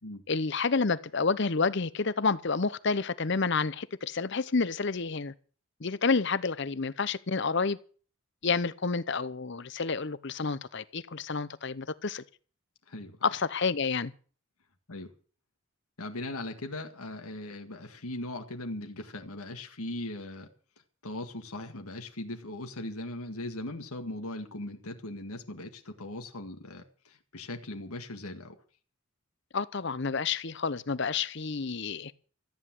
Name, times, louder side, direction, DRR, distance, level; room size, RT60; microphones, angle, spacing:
voice 1, 0.3-5.3 5.8-7.8 8.4-12.2 13.2-14.1 29.5-32.1, left 4 dB, 50° left, 0.7 m, -29 dB
voice 2, 12.9-13.2 14.9-15.1 16.0-20.5 21.0-28.6, left 1 dB, 85° left, 2.0 m, -39 dB
14.0 x 9.9 x 7.6 m
head